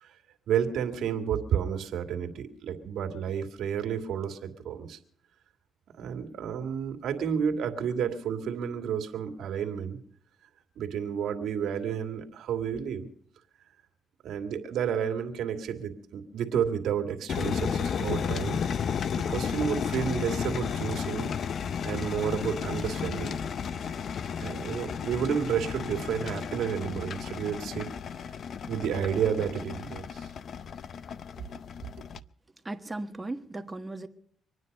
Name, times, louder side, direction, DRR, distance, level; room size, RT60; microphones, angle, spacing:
voice 1, 0.5-5.0 5.9-10.0 10.8-13.1 14.2-18.6 19.2-21.3 21.8-23.4 24.4-27.9 28.7-30.3, right 8 dB, 75° right, 6 dB, 2.2 m, -31 dB
sound 1, 17.3-32.2, left 7 dB, 55° left, 0.6 m, -33 dB
voice 2, 32.6-34.1, right 2 dB, 20° right, 7 dB, 1.4 m, -36 dB
25.0 x 9.8 x 5.4 m, 0.65 s
cardioid pair, 90°, 0 cm